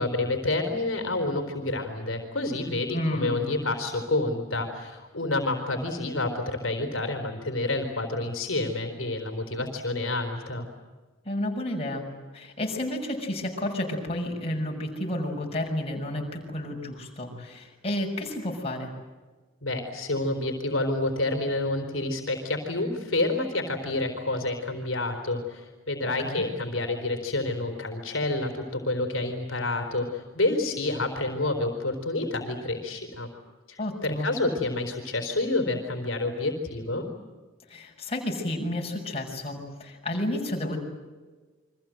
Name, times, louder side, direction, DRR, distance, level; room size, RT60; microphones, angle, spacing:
voice 1, 0.0-10.7 19.6-33.3 33.7-37.1, left 2 dB, 70° left, 5 dB, 4.1 m, -29 dB
voice 2, 2.9-3.5 11.2-12.0 12.3-18.9 26.0-26.4 33.8-34.3 37.7-40.8, left 1 dB, 30° left, 0 dB, 6.5 m, -31 dB
29.5 x 24.5 x 7.8 m, 1.3 s
head